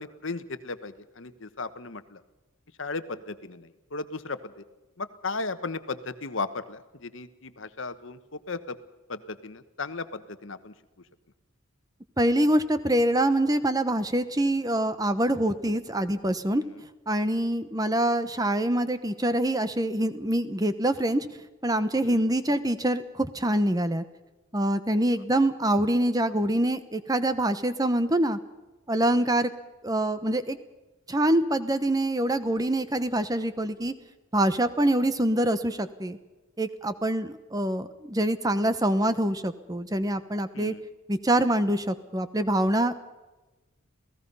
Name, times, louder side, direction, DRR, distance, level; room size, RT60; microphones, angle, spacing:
voice 1, 0.0-2.2 2.8-4.5 5.0-8.2 8.5-8.8 9.1-10.7 22.0-22.3 29.1-29.3 40.5-40.8, left 3 dB, 70° left, 12 dB, 1.2 m, -36 dB
voice 2, 12.2-16.6 17.1-21.3 21.6-24.0 24.5-28.4 28.9-29.5 29.8-30.6 31.1-33.9 34.3-36.2 36.6-40.7 41.1-42.9, right 1 dB, 20° right, 11 dB, 1.0 m, -25 dB
28.5 x 17.5 x 5.5 m, 1.1 s
head